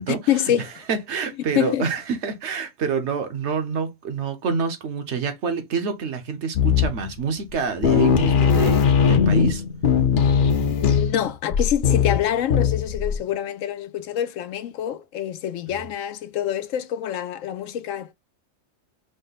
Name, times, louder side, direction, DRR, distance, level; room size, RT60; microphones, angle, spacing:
voice 1, 0.1-0.7 1.5-1.9 10.8-18.1, left 10 dB, 80° left, 1.0 m, -26 dB
voice 2, 0.9-9.6 15.8-15.9, right 5 dB, 65° right, 1.1 m, -27 dB
sound 1, 6.6-7.2 7.5-7.6 7.8-13.2, left 7 dB, 50° left, 0.7 m, -19 dB
5.2 x 2.1 x 3.9 m
omnidirectional pair, 1.3 m